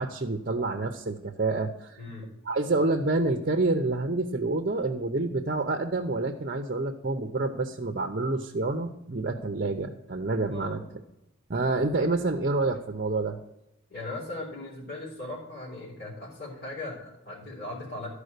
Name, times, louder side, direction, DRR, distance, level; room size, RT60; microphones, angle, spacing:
voice 1, 0.0-2.0 2.5-10.8 11.5-13.4, right 2 dB, 45° right, 5 dB, 0.7 m, -28 dB
voice 2, 13.9-18.1, left 2 dB, 50° left, -6 dB, 4.1 m, -38 dB
12.5 x 4.9 x 6.6 m, 0.90 s
head